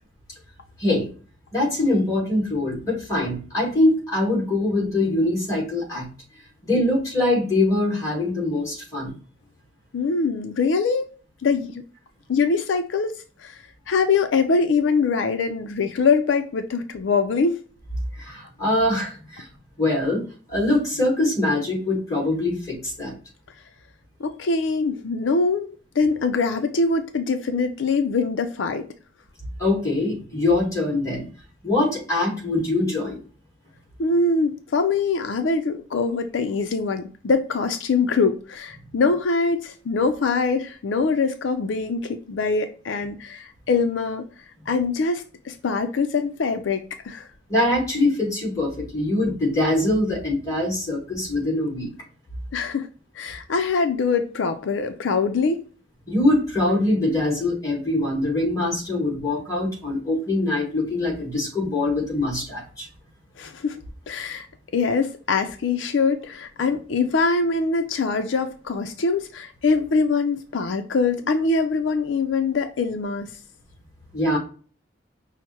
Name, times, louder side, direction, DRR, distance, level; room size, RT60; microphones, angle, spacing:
voice 1, 1.5-6.1 6.6-9.1 18.2-19.5 19.8-20.2 20.5-23.1 29.6-31.3 31.6-33.2 47.5-51.9 56.1-62.9 74.1-74.4, left 2 dB, 20° left, 2.3 m, -23 dB
voice 2, 9.9-11.1 11.4-11.8 12.3-13.1 13.4-17.6 24.2-28.8 34.0-44.2 44.7-47.3 52.5-52.9 53.2-55.6 63.4-63.8 64.1-64.5 64.7-73.3, left 4 dB, 85° left, 0.5 m, -23 dB
5.6 x 2.1 x 4.4 m
head